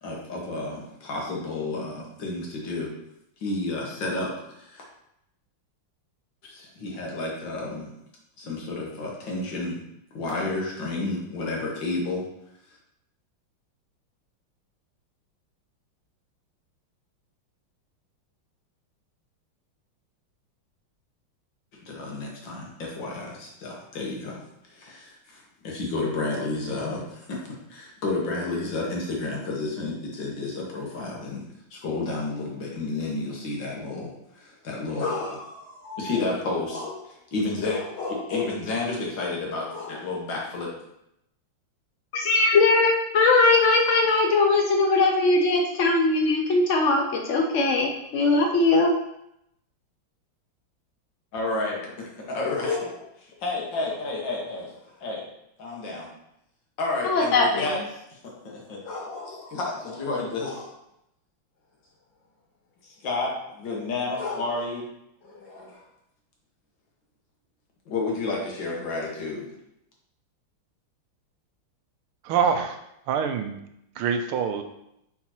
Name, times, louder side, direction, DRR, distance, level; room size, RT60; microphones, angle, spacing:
voice 1, 0.0-2.9 3.4-4.8 6.4-7.9 8.4-9.8 10.1-12.2 21.9-24.4 24.7-40.7 51.3-53.0 53.4-55.2 55.6-56.1 56.8-57.8 58.2-60.7 62.8-64.9 65.2-65.8 67.9-69.5, left 3 dB, 60° left, -2 dB, 2.2 m, -31 dB
voice 2, 42.1-48.9 57.0-57.7, left 3 dB, 90° left, 2 dB, 0.6 m, -20 dB
voice 3, 72.2-72.8 73.1-73.6 74.0-74.6, right 7 dB, 90° right, 7 dB, 1.6 m, -25 dB
5.8 x 4.7 x 4.4 m, 0.80 s
omnidirectional pair, 2.3 m